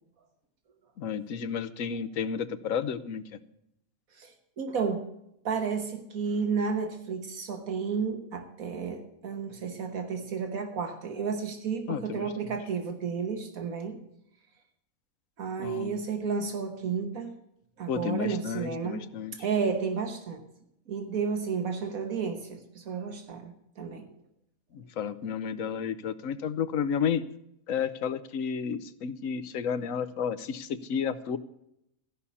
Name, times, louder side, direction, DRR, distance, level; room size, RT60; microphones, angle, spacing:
voice 1, 1.0-3.2 11.9-12.3 15.6-16.0 17.9-19.3 24.7-27.2 27.7-31.4, left 7 dB, 70° left, 12 dB, 1.1 m, -31 dB
voice 2, 4.6-5.0 5.4-14.0 15.4-17.3 17.8-19.0 19.4-20.4 20.9-24.1, right 5 dB, 75° right, 6 dB, 1.6 m, -32 dB
14.5 x 5.6 x 8.3 m, 0.79 s
omnidirectional pair, 1.5 m